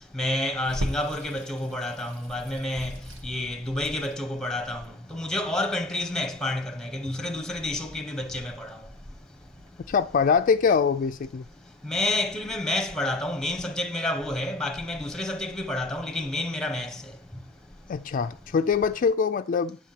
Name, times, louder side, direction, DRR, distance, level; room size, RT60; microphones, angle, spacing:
voice 1, 0.1-3.0 3.2-8.8 11.8-16.9, left 1 dB, 5° left, 1.0 m, -29 dB
Water tap faucet / Sink (filling or washing), 0.7-9.7, equal, 80° right, 1.6 m, -41 dB
voice 2, 9.9-11.4 17.9-19.8, left 6 dB, 45° left, 0.3 m, -23 dB
9.9 x 4.2 x 7.5 m
head